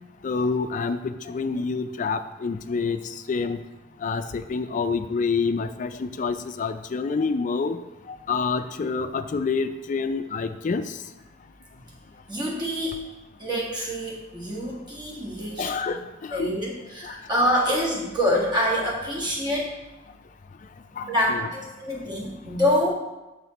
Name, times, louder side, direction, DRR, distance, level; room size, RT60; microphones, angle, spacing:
voice 1, 0.2-3.6 4.0-7.8 8.1-11.0 15.6-16.6 17.0-17.1 21.0-21.5, left 4 dB, 40° left, 10 dB, 0.3 m, -27 dB
voice 2, 12.3-13.0 13.4-15.7 16.3-19.7 21.1-22.9, equal, 20° right, -4 dB, 1.6 m, -26 dB
6.1 x 5.6 x 4.1 m, 1.1 s
head